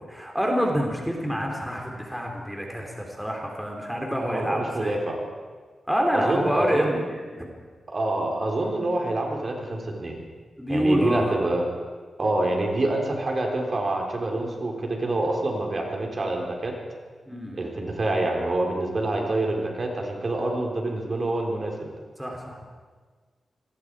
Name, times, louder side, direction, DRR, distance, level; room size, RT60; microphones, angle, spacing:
voice 1, 0.0-5.0 5.9-7.5 10.6-11.3 14.8-14.9 17.3-17.7 22.2-22.7, equal, 5° right, 0 dB, 3.3 m, -27 dB
voice 2, 4.2-5.2 6.1-7.0 7.9-10.2 10.7-11.7 12.2-16.7 17.5-21.9, right 2 dB, 40° right, 1 dB, 4.1 m, -26 dB
26.5 x 20.5 x 4.9 m, 1.5 s
wide cardioid pair, 105°, 0 cm